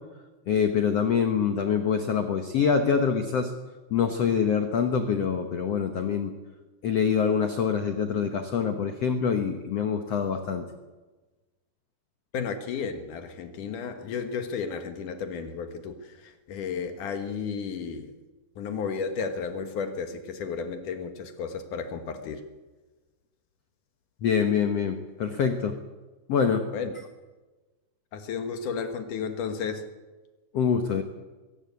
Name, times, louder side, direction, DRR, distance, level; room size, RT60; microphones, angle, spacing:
voice 1, 0.5-3.5 3.9-6.3 6.8-10.7 24.2-25.8 26.3-26.7 30.5-31.0, left 6 dB, 90° left, 1.3 m, -25 dB
voice 2, 12.3-18.1 18.6-22.4 26.7-26.9 28.1-29.9, left 6 dB, 60° left, 2.5 m, -33 dB
22.5 x 17.5 x 8.5 m
omnidirectional pair, 4.8 m